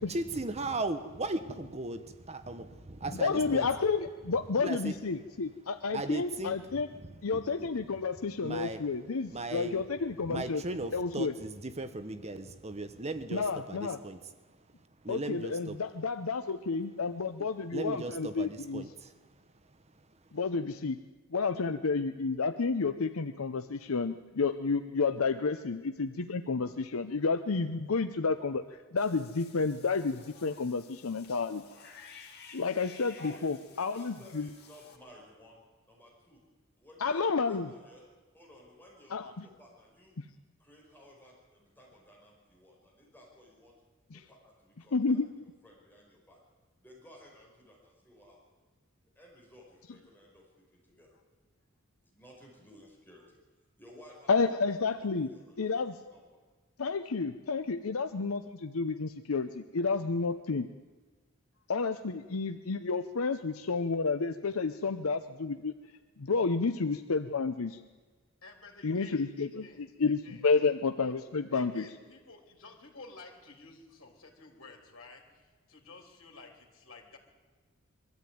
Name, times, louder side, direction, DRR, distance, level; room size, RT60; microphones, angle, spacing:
voice 1, 0.1-3.7 4.6-5.0 5.9-6.6 7.6-7.7 8.4-8.8 9.3-9.8 10.2-14.2 15.0-15.8 17.7-19.1, right 2 dB, 30° right, 10 dB, 1.0 m, -37 dB
voice 2, 3.1-6.9 7.2-10.6 10.9-11.3 13.3-14.0 15.1-18.9 20.3-21.0 21.3-31.6 32.5-34.5 37.0-37.7 39.1-39.4 40.2-40.3 44.1-44.2 44.9-45.3 54.3-55.3 55.6-56.0 56.8-60.7 61.7-65.7 66.2-67.8 68.8-71.8, left 4 dB, 85° left, 8 dB, 0.7 m, -31 dB
Cat / Bathtub (filling or washing), 29.0-35.0, left 4 dB, 50° left, 2.4 m, -52 dB
voice 3, 33.3-35.6 35.9-36.4 36.8-38.0 38.3-40.1 40.6-43.8 44.1-45.2 45.6-46.4 46.8-48.6 49.1-51.1 52.0-53.4 53.8-54.5 55.0-56.4, left 1 dB, 10° left, -3 dB, 5.0 m, -56 dB
voice 4, 68.4-69.8 70.2-70.4 71.0-71.1 71.5-77.2, left 3 dB, 70° left, 2 dB, 3.5 m, -52 dB
22.5 x 13.5 x 9.4 m, 1.4 s
head